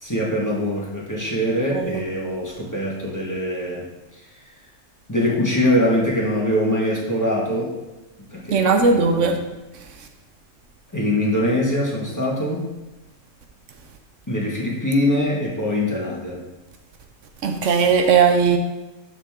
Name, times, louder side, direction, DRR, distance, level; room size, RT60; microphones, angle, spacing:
voice 1, 0.0-3.9 5.1-7.7 8.3-9.3 10.9-12.6 14.3-16.4, left 1 dB, 15° left, -4 dB, 1.5 m, -23 dB
voice 2, 1.7-2.0 8.5-9.4 17.4-18.6, right 5 dB, 75° right, 5 dB, 1.1 m, -18 dB
12.0 x 4.1 x 3.6 m, 1.1 s
omnidirectional pair, 1.3 m